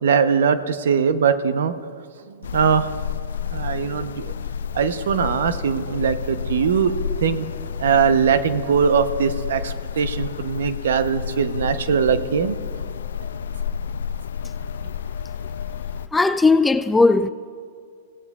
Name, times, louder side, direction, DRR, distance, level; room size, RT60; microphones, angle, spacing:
voice 1, 0.0-1.7 2.5-2.9 3.5-4.3 4.7-6.9 7.2-7.5 7.8-12.6, right 6 dB, 80° right, 0.8 m, -21 dB
sound 1, 2.4-16.1, left 7 dB, 80° left, 0.4 m, -30 dB
voice 2, 16.1-17.3, left 3 dB, 10° left, 0.4 m, -17 dB
25.5 x 17.0 x 2.4 m
hypercardioid pair, 130°, 0 cm